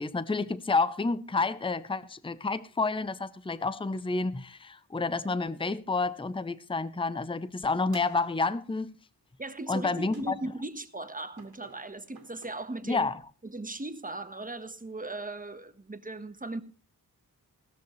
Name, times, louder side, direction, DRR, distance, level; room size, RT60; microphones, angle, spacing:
voice 1, 0.0-8.9 9.7-10.4 12.9-13.2, left 3 dB, 15° left, 0.7 m, -29 dB
sound 1, 7.9-8.8 10.1-10.7 11.4-12.5, right 5 dB, 70° right, 2.7 m, -55 dB
voice 2, 9.4-13.1 13.4-16.6, right 2 dB, 20° right, 1.3 m, -38 dB
16.5 x 13.5 x 3.2 m
wide cardioid pair, 85°, 39 cm